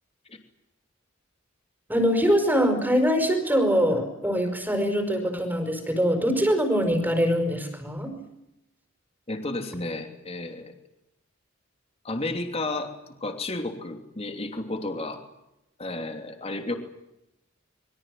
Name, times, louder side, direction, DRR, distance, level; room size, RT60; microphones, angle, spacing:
voice 1, 1.9-8.1, equal, 10° right, 7 dB, 5.2 m, -23 dB
voice 2, 9.3-10.7 12.0-15.2 15.8-16.8, left 2 dB, 30° left, 5 dB, 3.1 m, -32 dB
26.5 x 23.5 x 7.8 m, 0.87 s
head